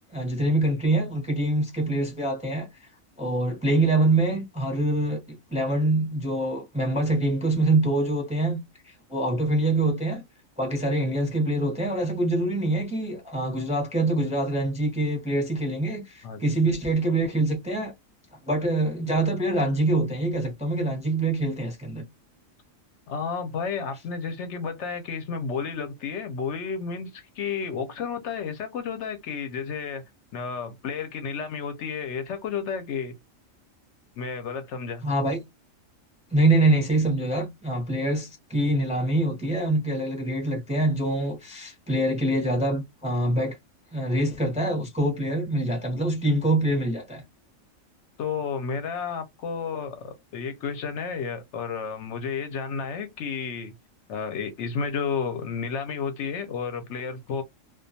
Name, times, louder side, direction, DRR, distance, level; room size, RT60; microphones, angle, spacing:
voice 1, 0.1-2.7 3.2-5.2 5.5-8.6 8.8-10.2 10.6-17.9 18.5-22.0 35.0-35.4 36.3-43.5 43.9-47.2, right 2 dB, 10° right, 0.5 m, -25 dB
voice 2, 23.1-30.0 30.3-33.1 34.2-35.0 48.2-53.7 54.1-57.4, left 6 dB, 70° left, 0.8 m, -32 dB
2.3 x 2.2 x 2.6 m
omnidirectional pair, 1.4 m